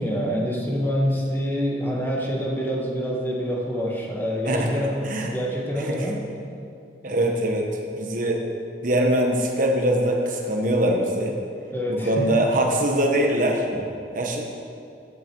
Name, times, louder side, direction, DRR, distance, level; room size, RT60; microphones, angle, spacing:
voice 1, 0.0-6.2 11.7-12.4, equal, 10° left, -2 dB, 1.7 m, -26 dB
voice 2, 4.5-5.3 5.7-6.1 7.0-8.5 8.8-11.3 11.9-13.7 14.1-14.5, right 1 dB, 50° right, 1 dB, 1.3 m, -23 dB
14.5 x 10.5 x 4.7 m, 2.5 s
head